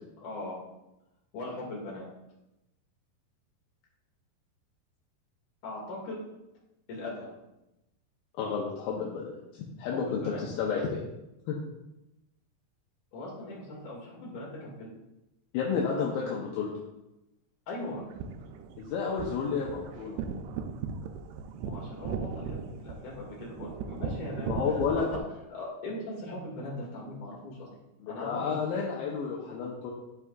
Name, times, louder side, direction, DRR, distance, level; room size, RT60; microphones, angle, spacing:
voice 1, 0.2-0.6 1.3-2.0 5.6-6.2 6.9-7.4 9.8-10.4 13.1-14.9 17.7-18.0 21.6-24.6 24.9-25.2 25.5-27.7 28.1-28.6, left 2 dB, 55° left, -4 dB, 3.2 m, -39 dB
voice 2, 8.4-11.0 11.5-11.6 15.5-16.7 18.8-20.2 24.4-25.0 28.0-29.9, left 6 dB, 75° left, -3 dB, 2.4 m, -31 dB
sound 1, 18.0-25.2, right 5 dB, 85° right, 2.6 m, -38 dB
12.5 x 4.8 x 2.4 m, 0.93 s
omnidirectional pair, 4.6 m